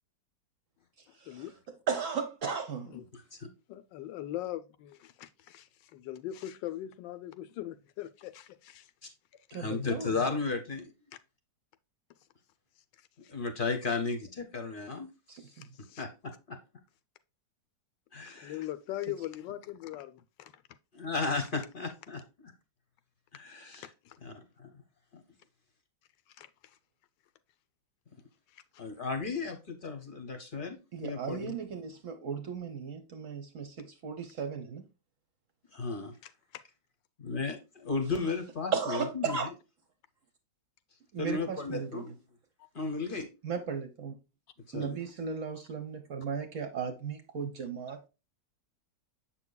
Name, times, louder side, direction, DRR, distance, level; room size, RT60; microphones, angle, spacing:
voice 1, 1.1-1.5 2.8-3.0 3.7-8.9 13.0-13.3 15.6-16.0 18.4-20.6 23.8-24.2 26.3-26.8 28.5-28.8 36.2-36.6, left 13 dB, 85° left, 1.3 m, -41 dB
voice 2, 1.9-3.0 9.5-10.1 15.3-15.7 30.9-34.9 38.7-39.5 41.1-42.1 43.4-44.2 44.7-48.1, right 6 dB, 55° right, 0.9 m, -36 dB
voice 3, 9.5-10.9 13.3-15.1 16.0-16.6 18.1-18.6 20.9-22.5 23.3-23.9 24.2-24.8 25.1-25.2 28.8-30.8 31.0-31.6 35.7-36.1 37.2-39.4 41.2-42.1 42.7-43.3 44.7-45.0, left 4 dB, 40° left, 0.8 m, -34 dB
7.6 x 6.0 x 2.2 m
omnidirectional pair, 1.9 m